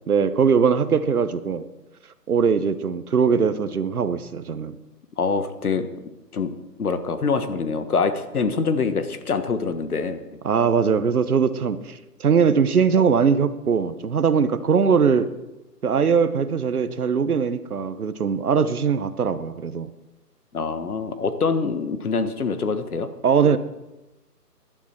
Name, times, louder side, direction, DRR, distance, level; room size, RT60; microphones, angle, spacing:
voice 1, 0.1-1.7 2.3-4.8 10.4-15.3 15.8-19.9 23.2-23.6, right 6 dB, 65° right, 13 dB, 1.1 m, -21 dB
voice 2, 5.2-5.9 6.3-6.5 6.8-10.2 20.5-23.1, left 4 dB, 65° left, 10 dB, 1.5 m, -24 dB
17.5 x 11.5 x 4.5 m, 0.98 s
hypercardioid pair, 165°, 49 cm